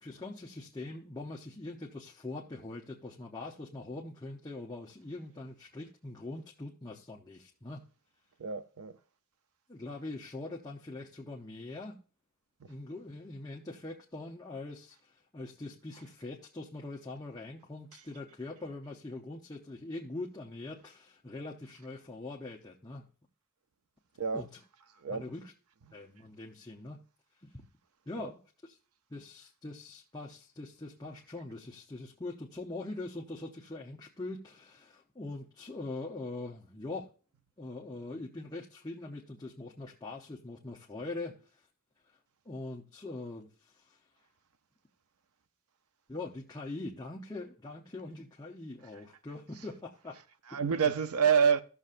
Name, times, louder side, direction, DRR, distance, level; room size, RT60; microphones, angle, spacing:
voice 1, 0.0-7.8 9.7-12.0 12.7-23.0 24.3-24.6 25.1-25.5 25.9-27.0 27.4-27.6 28.1-28.8 29.1-37.1 37.6-41.6 42.1-42.2 42.4-44.0 46.1-50.2 50.5-50.9, left 2 dB, 20° left, 0.7 m, -43 dB
voice 2, 8.4-8.9 12.6-12.7 15.9-16.0 24.2-24.4 25.0-25.2 28.2-28.3 49.6-49.7 50.1-51.6, right 7 dB, 85° right, 0.6 m, -28 dB
15.5 x 6.6 x 2.5 m
head